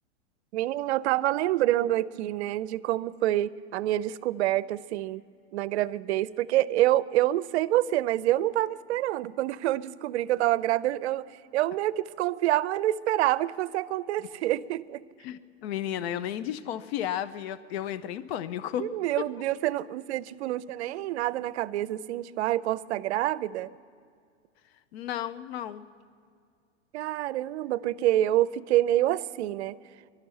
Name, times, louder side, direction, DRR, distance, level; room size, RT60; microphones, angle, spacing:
voice 1, 0.5-5.2 5.5-11.2 11.5-15.0 18.8-23.7 26.9-29.8, right 14 dB, 65° right, 17 dB, 0.6 m, -27 dB
voice 2, 15.2-18.9 19.2-19.3 24.9-25.9, left 11 dB, 60° left, 14 dB, 0.7 m, -33 dB
21.5 x 12.0 x 5.6 m, 2.2 s
hypercardioid pair, 135°, 35 cm